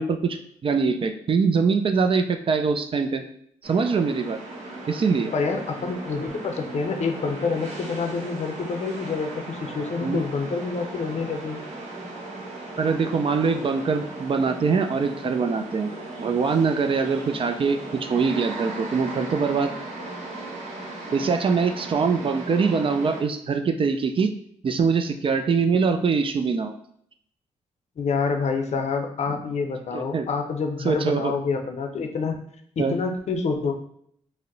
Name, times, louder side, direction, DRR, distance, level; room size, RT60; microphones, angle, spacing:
voice 1, 0.0-3.3 3.6-4.4 4.9-5.3 10.0-10.2 12.8-15.9 16.2-19.7 21.1-24.3 24.6-26.7 29.9-30.3 30.8-31.3 32.8-33.0, right 5 dB, 40° right, 7 dB, 0.3 m, -23 dB
sound 1, 3.6-23.2, right 2 dB, 60° right, 0.9 m, -37 dB
voice 2, 5.3-11.6 28.0-32.4 32.8-33.7, left 4 dB, 55° left, 4 dB, 0.5 m, -27 dB
2.6 x 2.0 x 3.8 m, 0.67 s
supercardioid pair, 55°, 13 cm